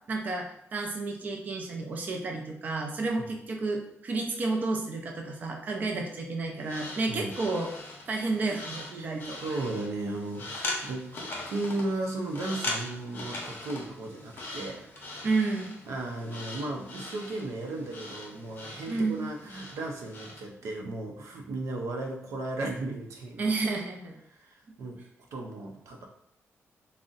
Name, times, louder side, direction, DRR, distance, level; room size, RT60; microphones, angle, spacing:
voice 1, 0.1-7.7 8.1-9.4 15.2-15.8 18.9-19.2 23.4-24.2, right 3 dB, 35° right, 1 dB, 0.3 m, -31 dB
sound 1, 6.6-20.5, left 2 dB, 45° left, 0.6 m, -40 dB
voice 2, 9.4-11.1 11.4-14.9 15.9-23.5 24.3-25.0 25.3-26.1, right 2 dB, 85° right, 2 dB, 0.5 m, -35 dB
2.5 x 2.0 x 3.7 m, 0.79 s
wide cardioid pair, 175°, 5 cm